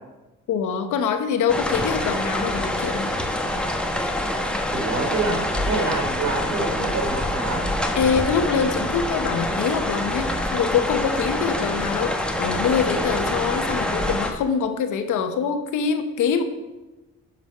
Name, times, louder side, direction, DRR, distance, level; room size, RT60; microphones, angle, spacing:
voice 1, 0.5-3.1 7.9-16.4, left 6 dB, 80° left, 7 dB, 1.1 m, -24 dB
sound 1, 1.5-14.3, left 1 dB, 5° left, 1.1 m, -26 dB
voice 2, 4.7-5.4 5.7-7.6, right 3 dB, 70° right, 0 dB, 3.4 m, -26 dB
11.0 x 5.6 x 5.6 m, 1.1 s
cardioid pair, 90°, 30 cm